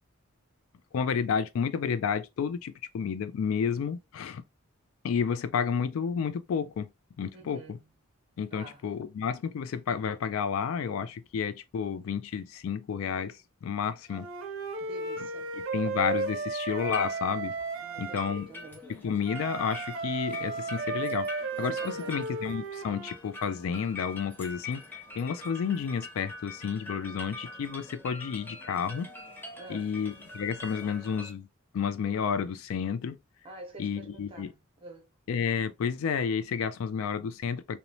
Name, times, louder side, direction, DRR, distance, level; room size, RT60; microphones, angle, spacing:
voice 1, 0.9-4.4 5.0-6.9 7.2-7.8 8.4-14.3 15.7-17.5 18.0-18.5 19.0-29.1 29.7-31.5 31.7-33.2 33.8-34.5 35.3-37.8, left 6 dB, 70° left, 0.3 m, -31 dB
voice 2, 7.3-7.9 8.5-8.9 14.8-15.5 17.8-18.9 21.8-22.2 29.6-30.0 33.4-35.1, right 2 dB, 25° right, 0.8 m, -47 dB
Wind instrument woodwind instrument, 14.1-18.2 19.2-23.2, right 3 dB, 65° right, 0.5 m, -34 dB
sound 1, 16.8-31.3, left 2 dB, 10° left, 0.5 m, -44 dB
3.0 x 2.0 x 2.6 m
head